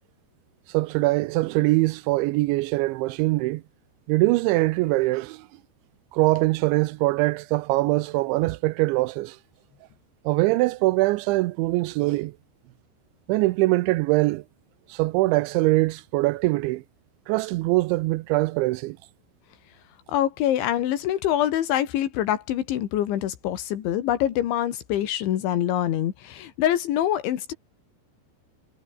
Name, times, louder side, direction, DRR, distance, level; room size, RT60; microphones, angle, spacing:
voice 1, 0.7-3.6 4.1-5.5 6.1-9.4 10.3-12.3 13.3-14.4 14.9-16.8 17.3-19.0, right 20 dB, 90° right, 3.1 m, -23 dB
voice 2, 20.1-27.5, left 11 dB, 85° left, 4.4 m, -25 dB
omnidirectional pair, 5.2 m